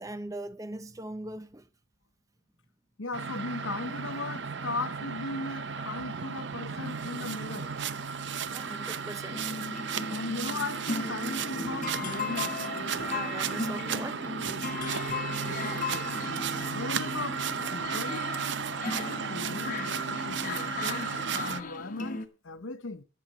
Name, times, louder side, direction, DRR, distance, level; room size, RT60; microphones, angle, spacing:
voice 1, 0.0-1.7 8.5-9.6 13.0-14.3, right 2 dB, 15° right, 0.5 m, -40 dB
voice 2, 3.0-7.7 10.1-12.6 16.7-17.4 17.7-18.2 19.3-19.8 20.3-23.0, left 3 dB, 75° left, 0.9 m, -37 dB
sound 1, 3.1-21.6, right 6 dB, 60° right, 0.6 m, -34 dB
sound 2, 9.3-22.3, left 3 dB, 40° left, 1.1 m, -37 dB
11.0 x 7.4 x 6.5 m
head